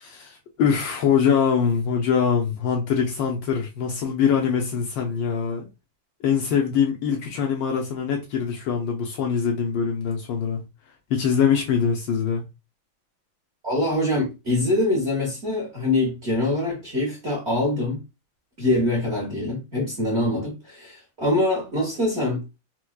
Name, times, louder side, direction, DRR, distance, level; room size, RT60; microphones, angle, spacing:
voice 1, 0.0-5.7 6.2-10.6 11.1-12.4, left 7 dB, 70° left, 1.2 m, -23 dB
voice 2, 13.6-18.0 18.6-22.4, left 1 dB, 40° right, 1.1 m, -24 dB
4.5 x 2.2 x 2.3 m
omnidirectional pair, 2.3 m